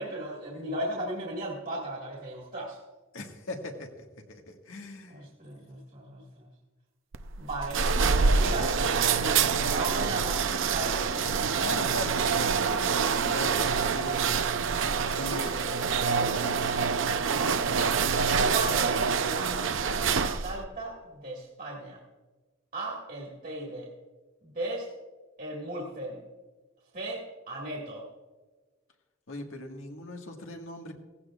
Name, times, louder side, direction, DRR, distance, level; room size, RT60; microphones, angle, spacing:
voice 1, 0.0-2.8 5.1-6.4 7.4-7.8 8.2-8.8 9.2-11.3 15.2-16.3 17.2-18.1 18.4-22.0 22.7-23.9 24.4-24.9 25.4-26.2 26.9-28.1, right 1 dB, 40° right, -3 dB, 1.8 m, -36 dB
voice 2, 3.1-5.3 11.6-14.6 15.1-15.6 16.2-16.8 29.3-30.9, left 1 dB, 80° left, 2 dB, 1.6 m, -40 dB
sound 1, 7.1-20.6, right 5 dB, 65° right, 0.6 m, -26 dB
17.0 x 15.5 x 2.4 m, 1.3 s
head